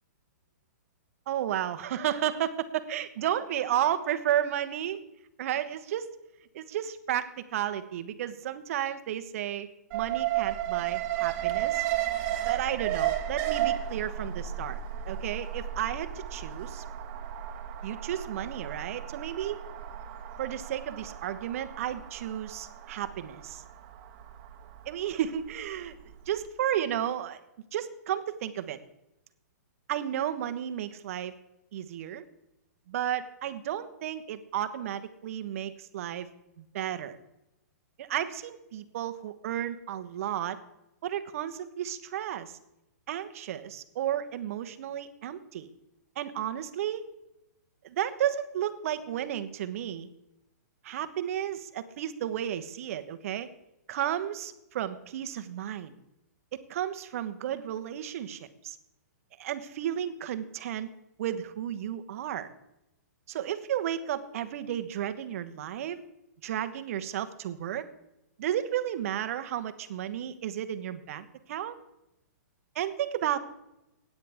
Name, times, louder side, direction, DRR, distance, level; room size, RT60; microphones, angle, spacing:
voice 1, 1.3-5.0 5.4-6.1 6.5-9.7 9.9-11.8 12.4-14.8 15.1-16.8 17.8-19.6 20.4-23.6 24.8-25.9 26.3-27.4 27.7-28.8 29.9-31.3 31.7-32.2 32.9-36.3 36.6-37.2 38.0-40.6 41.0-42.6 43.1-45.7 46.2-47.1 47.8-50.1 50.8-53.5 53.9-55.9 56.5-58.8 59.4-60.9 61.2-62.5 63.3-66.0 66.4-67.8 68.4-71.7 72.7-73.4, right 11 dB, 55° right, 10 dB, 1.1 m, -33 dB
Alarm, 9.9-26.0 26.3-26.4, right 12 dB, 35° right, 1.5 m, -33 dB
16.0 x 9.5 x 3.5 m, 0.89 s
hypercardioid pair, 140°, 9 cm